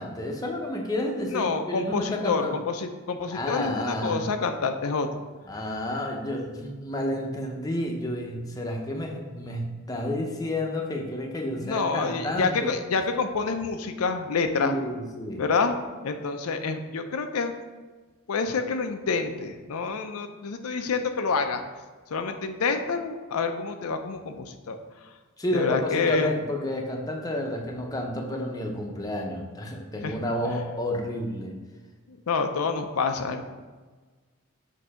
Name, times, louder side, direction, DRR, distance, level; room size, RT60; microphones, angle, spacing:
voice 1, 0.0-2.6 3.3-4.3 5.5-12.7 14.6-15.5 25.4-31.6, left 1 dB, 15° left, 1 dB, 0.6 m, -30 dB
voice 2, 1.3-5.1 11.6-14.7 15.4-15.7 16.0-17.5 18.3-21.6 22.1-24.8 25.5-26.3 30.0-30.2 32.1-33.5, left 4 dB, 85° left, 7 dB, 0.5 m, -27 dB
6.4 x 2.7 x 5.6 m, 1.3 s
head